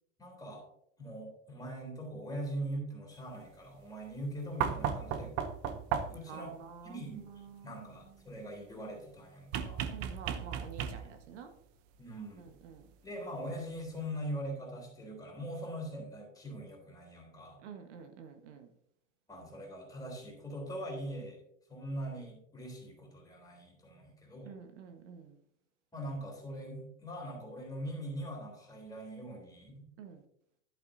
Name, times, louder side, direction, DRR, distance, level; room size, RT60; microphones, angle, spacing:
voice 1, 0.2-0.7 1.0-5.3 6.1-6.6 6.8-7.3 7.6-9.9 12.0-12.5 13.0-17.6 19.3-21.4 21.7-24.5 25.9-29.9, right 1 dB, 10° left, -1 dB, 3.6 m, -42 dB
sound 1, 4.6-6.4 9.5-11.3 12.8-12.9, right 8 dB, 40° right, 0.8 m, -35 dB
voice 2, 6.3-8.2 9.9-11.5 12.4-12.9 17.6-18.7 24.4-25.4 30.0-30.2, right 6 dB, 70° right, 7 dB, 1.5 m, -49 dB
11.0 x 9.1 x 2.7 m, 0.71 s
supercardioid pair, 135°, 37 cm